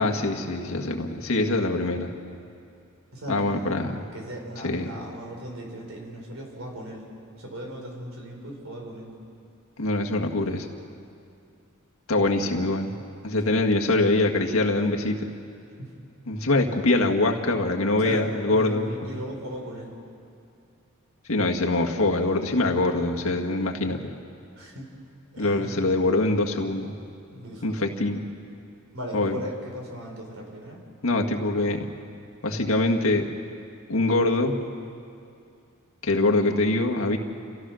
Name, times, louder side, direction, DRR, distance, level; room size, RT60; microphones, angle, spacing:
voice 1, 0.0-2.1 3.3-4.0 4.6-4.9 9.8-10.7 12.1-12.9 13.2-15.3 16.3-19.1 21.3-24.1 25.4-26.9 27.6-28.2 29.1-29.4 31.0-31.9 32.4-33.3 33.9-34.6 36.0-37.2, left 2 dB, 90° left, 1 dB, 1.8 m, -24 dB
voice 2, 3.1-3.8 4.1-7.0 7.4-9.1 12.2-12.4 13.5-13.6 15.8-15.9 18.0-19.9 24.6-24.9 25.3-25.8 27.3-27.9 28.9-30.8, equal, 70° right, 1 dB, 4.8 m, -37 dB
29.0 x 15.5 x 6.4 m, 2.5 s
head